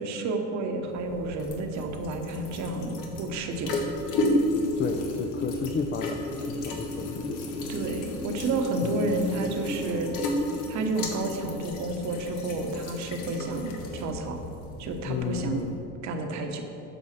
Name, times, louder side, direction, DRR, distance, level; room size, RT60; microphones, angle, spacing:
voice 1, 0.0-3.7 7.7-10.1 10.7-14.4 14.8-15.6 16.0-16.6, right 2 dB, 60° right, 4 dB, 1.2 m, -30 dB
sound 1, 0.8-15.8, left 1 dB, 85° left, 1.4 m, -33 dB
voice 2, 4.8-6.2 6.5-7.7 8.8-9.1 15.0-15.8, left 6 dB, 30° left, 4 dB, 0.5 m, -32 dB
9.0 x 5.5 x 6.6 m, 2.8 s
cardioid pair, 125°, 32 cm